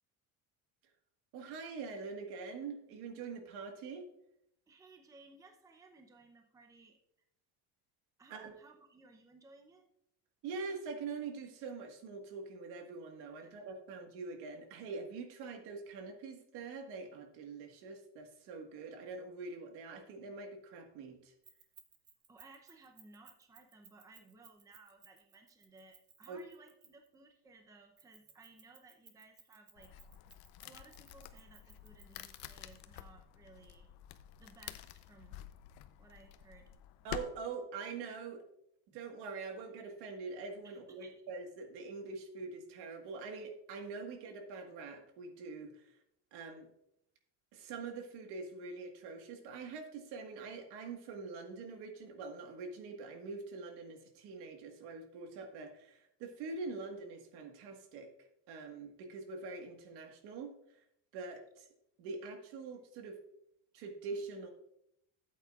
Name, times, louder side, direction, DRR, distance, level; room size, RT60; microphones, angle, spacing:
voice 1, 1.3-4.1 8.3-8.5 10.4-21.3 26.3-26.5 37.0-38.4 38.9-46.0 46.3-46.7 47.5-58.1 58.5-60.8 61.1-61.7 62.0-63.2 63.7-64.5, right 4 dB, 75° right, 5 dB, 1.6 m, -44 dB
voice 2, 4.7-7.0 8.2-9.9 13.4-13.6 22.3-30.0 30.6-33.9 34.4-35.4 36.0-37.1 40.6-41.2, right 3 dB, 10° right, 4 dB, 0.6 m, -60 dB
Keys jangling, 21.4-27.1 28.0-32.7, right 6 dB, 25° right, 1.1 m, -61 dB
sound 1, 29.8-37.2, left 13 dB, 65° left, 0.7 m, -49 dB
13.0 x 8.4 x 2.4 m, 0.76 s
cardioid pair, 165°, 39 cm